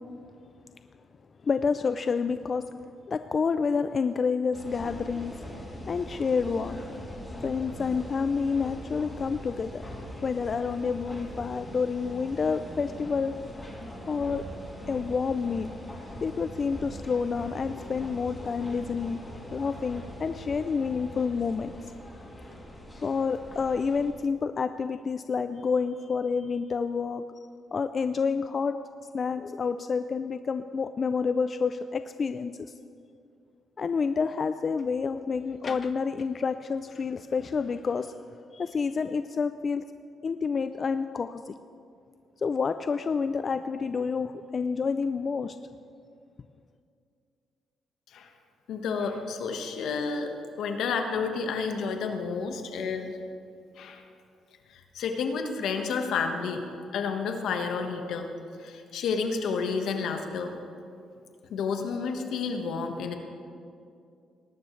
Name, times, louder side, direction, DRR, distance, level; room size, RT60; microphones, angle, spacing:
voice 1, 1.4-2.7 3.1-5.4 5.9-6.8 7.4-9.8 10.2-13.4 14.1-14.4 14.9-15.7 16.2-19.2 19.5-21.7 23.0-27.2 27.7-28.8 29.1-32.5 33.8-38.1 38.5-39.8 40.2-41.5 42.4-45.6, left 5 dB, 40° left, 10 dB, 0.4 m, -29 dB
sound 1, 4.5-24.1, equal, 15° left, 2.8 m, -42 dB
voice 2, 48.7-50.3 50.6-53.2 53.8-54.0 54.7-56.6 56.9-58.3 58.6-60.5 61.5-63.1, left 5 dB, 75° left, 5 dB, 1.3 m, -30 dB
19.5 x 11.5 x 3.2 m, 2.4 s
cardioid pair, 90°, 0 cm